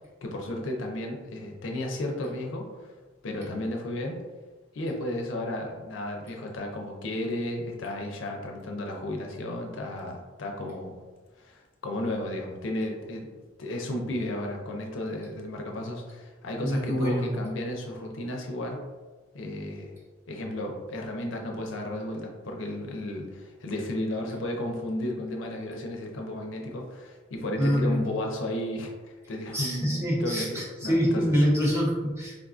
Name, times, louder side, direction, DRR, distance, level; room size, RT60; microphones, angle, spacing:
voice 1, 0.2-2.9 3.2-4.2 4.7-11.0 11.4-13.3 13.6-18.8 19.3-19.9 20.3-31.3, left 1 dB, 75° left, 1 dB, 0.5 m, -33 dB
voice 2, 16.6-17.3 27.6-28.1 29.5-32.4, equal, 15° right, -4 dB, 0.6 m, -25 dB
3.6 x 2.4 x 2.4 m, 1.3 s
head